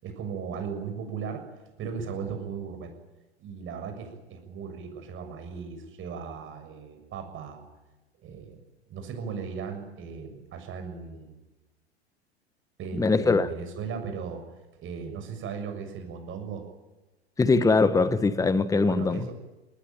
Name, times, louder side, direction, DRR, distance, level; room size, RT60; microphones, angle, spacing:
voice 1, 0.0-1.4 1.8-2.9 3.4-7.6 8.2-8.6 8.9-11.4 12.8-14.4 14.8-16.6 18.8-19.4, right 6 dB, 35° right, 6.8 m, -37 dB
voice 2, 13.0-13.5 17.4-19.3, left 3 dB, 10° left, 1.2 m, -22 dB
25.5 x 19.5 x 9.1 m
hypercardioid pair, 100°, 33 cm